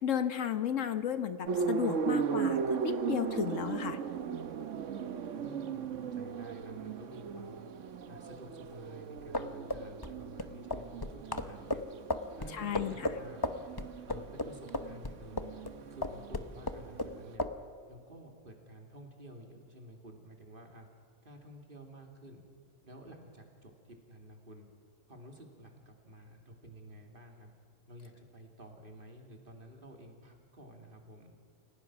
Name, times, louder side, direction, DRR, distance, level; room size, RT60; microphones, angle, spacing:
voice 1, 0.0-4.0 12.5-12.9, left 9 dB, 75° left, 11 dB, 1.3 m, -33 dB
sound 1, 1.4-17.3, right 6 dB, 75° right, 1.3 m, -37 dB
voice 2, 5.3-7.7 8.1-11.8 12.3-13.5 14.1-15.6 15.9-17.5 17.9-20.9 21.2-22.4 22.8-24.7 25.1-27.5 27.9-31.3, right 1 dB, 40° right, 3 dB, 2.8 m, -51 dB
sound 2, 9.2-15.7 16.0-17.1 17.4-17.6, left 2 dB, 20° left, 0.8 m, -35 dB
29.0 x 16.5 x 6.1 m, 2.2 s
omnidirectional pair, 1.3 m